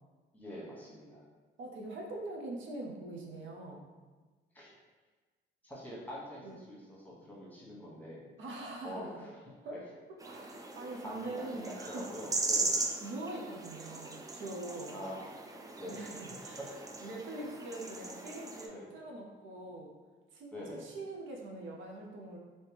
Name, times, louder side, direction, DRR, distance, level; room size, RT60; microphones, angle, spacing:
voice 1, 0.3-1.2 4.5-4.7 5.6-8.3 8.8-9.3 9.7-9.8 11.0-12.8 14.9-15.4 15.8-16.1 18.7-18.9 19.6-19.7 20.5-20.9, equal, 10° left, -6 dB, 1.2 m, -45 dB
voice 2, 1.6-3.9 6.4-6.6 8.4-9.2 9.6-9.8 10.2-12.1 12.6-15.0 15.9-16.7 17.0-19.9 20.3-22.4, right 2 dB, 75° right, -1 dB, 0.6 m, -43 dB
sound 1, 10.2-18.7, right 3 dB, 20° right, 0.4 m, -39 dB
3.0 x 2.7 x 3.3 m, 1.3 s
cardioid pair, 90°, 20 cm